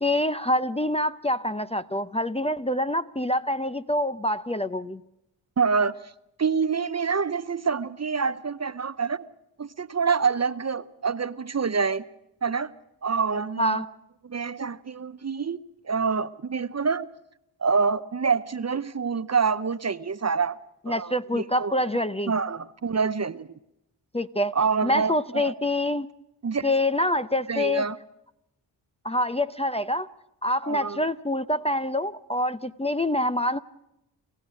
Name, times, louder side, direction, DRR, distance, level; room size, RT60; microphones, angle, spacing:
voice 1, 0.0-5.0 13.6-13.9 20.9-22.3 24.1-24.5 24.8-26.1 26.6-27.9 29.0-30.1 30.4-33.6, left 1 dB, 15° left, 12 dB, 0.6 m, -26 dB
voice 2, 5.6-6.0 6.4-9.2 9.6-12.0 12.4-12.7 13.0-13.8 14.2-17.1 17.6-20.6 20.9-21.8 22.3-23.6 24.5-25.5 26.4-26.7 27.5-28.0 30.6-31.0, right 5 dB, 35° right, 15 dB, 0.7 m, -26 dB
28.0 x 15.0 x 6.3 m, 0.84 s
supercardioid pair, 40°, 49 cm